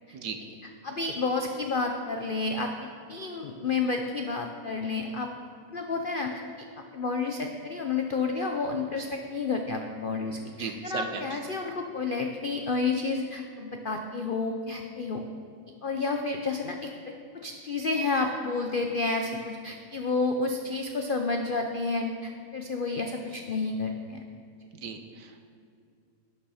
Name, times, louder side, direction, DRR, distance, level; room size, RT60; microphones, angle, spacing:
voice 1, 0.8-5.3 5.7-6.4 6.8-15.2 15.8-24.2, left 3 dB, 70° left, 3 dB, 0.4 m, -30 dB
voice 2, 10.5-11.2 24.8-25.3, right 6 dB, 75° right, 6 dB, 1.5 m, -36 dB
12.0 x 8.9 x 4.9 m, 2.4 s
omnidirectional pair, 1.9 m